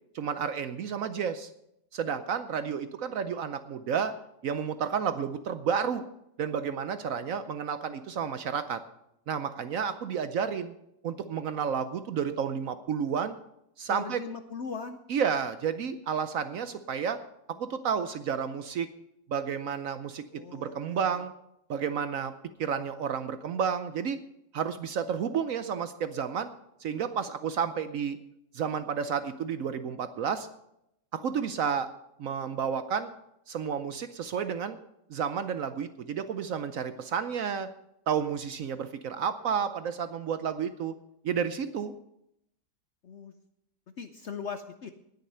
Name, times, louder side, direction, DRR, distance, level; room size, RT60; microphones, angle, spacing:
voice 1, 0.1-1.5 1.9-4.1 4.4-6.0 6.4-8.8 9.3-10.7 11.0-13.4 13.8-14.2 15.1-17.2 17.5-18.9 19.3-21.3 21.7-22.3 22.6-24.2 24.5-26.5 26.8-28.2 28.5-30.5 31.1-31.9 32.2-33.1 33.5-34.8 35.1-37.7 38.1-40.9 41.2-41.9, right 7 dB, 65° right, 11 dB, 0.9 m, -31 dB
voice 2, 13.9-15.0 20.3-21.0 43.0-43.3 44.0-44.9, left 6 dB, 60° left, 8 dB, 0.7 m, -39 dB
19.5 x 6.6 x 5.5 m, 0.80 s
omnidirectional pair, 1.8 m